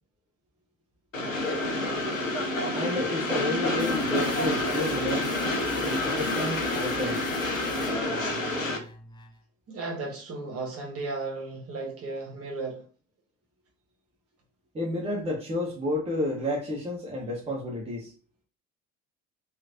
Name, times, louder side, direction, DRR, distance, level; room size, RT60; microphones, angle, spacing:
Train, 1.1-8.8, left 2 dB, 90° left, 0.5 m, -28 dB
voice 1, 2.7-5.4 5.8-7.3 14.7-18.1, left 1 dB, 15° right, 0.8 m, -31 dB
sound 1, 3.8-9.4, left 2 dB, 10° left, 0.5 m, -42 dB
voice 2, 9.7-12.8, right 3 dB, 35° right, 1.1 m, -35 dB
3.0 x 2.5 x 2.5 m
figure-of-eight pair, 55°, 39 cm